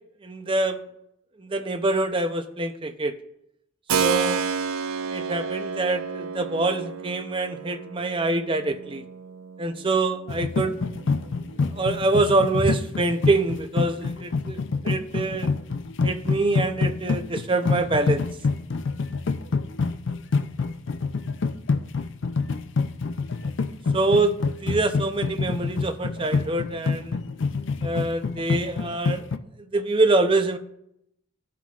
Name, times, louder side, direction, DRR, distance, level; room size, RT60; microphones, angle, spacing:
voice 1, 0.2-0.8 1.4-3.1 4.0-4.4 5.1-9.0 9.6-10.8 11.7-14.6 14.8-15.5 16.0-18.3 23.9-24.4 24.6-27.2 27.8-29.2 29.7-30.6, right 2 dB, 25° right, 8 dB, 0.5 m, -25 dB
Keyboard (musical), 3.9-12.5, right 6 dB, 85° right, 0.5 m, -31 dB
sound 1, 10.3-29.4, left 4 dB, 60° left, 0.4 m, -26 dB
15.0 x 5.9 x 2.4 m, 0.79 s
head